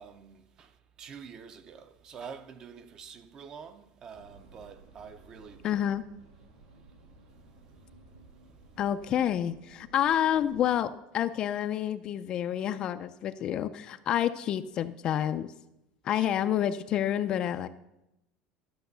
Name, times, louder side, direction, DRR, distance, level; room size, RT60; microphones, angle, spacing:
voice 1, 0.0-5.9 16.1-16.3, right 6 dB, 25° right, 0.6 m, -47 dB
sound 1, 4.1-10.9, right 2 dB, 90° right, 3.1 m, -56 dB
voice 2, 5.6-6.0 8.8-15.5 16.0-17.7, left 10 dB, 30° left, 0.4 m, -29 dB
12.5 x 7.0 x 6.7 m
cardioid pair, 180°, 3 cm